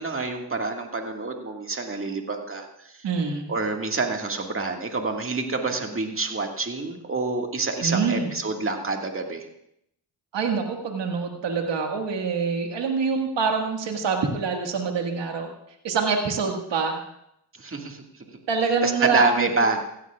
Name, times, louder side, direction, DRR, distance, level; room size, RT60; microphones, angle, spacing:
voice 1, 0.0-2.9 3.5-9.5 17.6-18.0 18.8-19.8, right 3 dB, 30° right, 2 dB, 1.9 m, -27 dB
voice 2, 3.0-3.5 7.8-8.3 10.3-15.5 15.8-17.0 18.5-19.5, right 5 dB, 80° right, 2 dB, 1.8 m, -25 dB
16.0 x 15.0 x 2.4 m, 0.77 s
cardioid pair, 60°, 43 cm